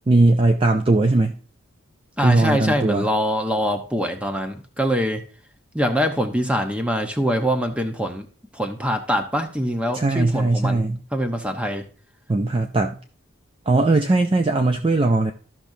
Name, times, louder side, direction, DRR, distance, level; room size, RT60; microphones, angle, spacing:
voice 1, 0.1-1.4 2.2-3.1 9.9-11.0 12.3-13.0 13.7-15.3, right 2 dB, 25° right, 6 dB, 0.4 m, -19 dB
voice 2, 2.2-5.2 5.7-8.3 8.5-10.8 11.1-11.8, equal, 5° right, 5 dB, 0.8 m, -24 dB
13.5 x 6.0 x 2.7 m, 0.41 s
head